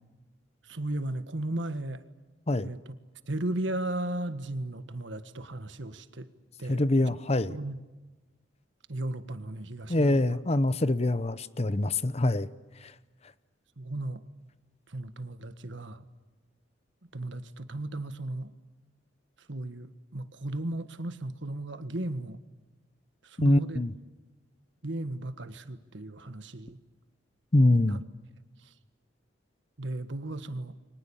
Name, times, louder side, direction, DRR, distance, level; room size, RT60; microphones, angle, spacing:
voice 1, 0.7-2.0 2.6-2.8 3.3-6.3 6.6-7.2 7.5-7.8 8.9-10.2 13.8-14.2 14.9-16.0 17.1-18.5 19.5-22.4 23.2-23.8 24.8-26.8 27.7-28.0 28.6-28.7 29.8-30.7, right 1 dB, 70° right, 11 dB, 1.6 m, -35 dB
voice 2, 6.7-7.6 9.9-12.5 23.4-23.9 27.5-28.0, left 1 dB, 35° left, 15 dB, 0.8 m, -24 dB
30.0 x 24.0 x 7.2 m, 1.2 s
head